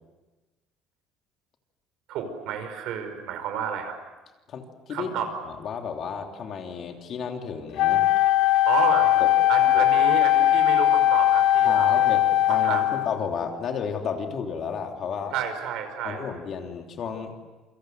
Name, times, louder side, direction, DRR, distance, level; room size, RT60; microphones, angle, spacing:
voice 1, 2.1-3.9 4.9-5.3 8.7-9.2 9.5-12.1 12.5-13.0 15.3-16.3, right 7 dB, 65° right, 7 dB, 5.3 m, -31 dB
voice 2, 4.5-5.2 5.4-8.1 9.2-9.3 9.7-9.9 11.6-15.3 16.0-17.3, left 6 dB, 40° left, 3 dB, 3.2 m, -32 dB
Wind instrument woodwind instrument, 7.8-13.2, left 12 dB, 65° left, 1.1 m, -20 dB
28.5 x 25.5 x 7.9 m, 1.2 s
cardioid pair, 160°, 0 cm